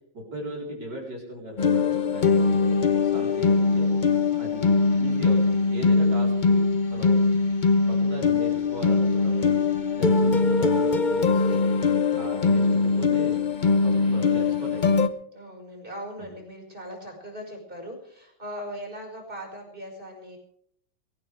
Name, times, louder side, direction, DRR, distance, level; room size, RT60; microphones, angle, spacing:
voice 1, 0.1-3.9 4.4-7.3 7.9-9.5 10.0-11.7 12.2-13.3 13.7-15.1, right 1 dB, 60° right, -2 dB, 5.0 m, -38 dB
sound 1, 1.6-15.1, left 4 dB, 50° left, 0.5 m, -22 dB
voice 2, 15.3-20.4, equal, 25° right, 1 dB, 5.6 m, -39 dB
22.5 x 16.0 x 3.5 m, 0.64 s
omnidirectional pair, 2.2 m